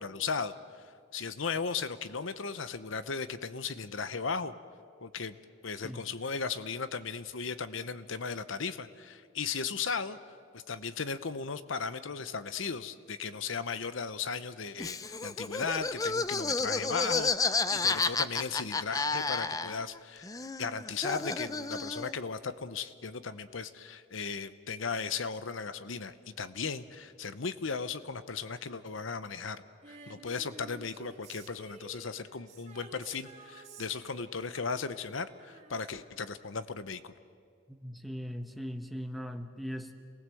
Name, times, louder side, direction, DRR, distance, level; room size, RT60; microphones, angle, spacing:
voice 1, 0.0-4.5 5.0-5.4 5.6-10.2 10.5-20.3 20.6-37.1, left 5 dB, 80° left, 13 dB, 0.9 m, -36 dB
Laughter, 14.8-20.0 20.2-22.2, left 4 dB, 20° left, 0.5 m, -31 dB
Female singing, 29.8-36.4 36.7-36.8, right 2 dB, 35° right, 2.9 m, -52 dB
voice 2, 37.7-39.9, equal, ahead, 7 dB, 1.1 m, -39 dB
28.0 x 19.5 x 7.8 m, 2.2 s
head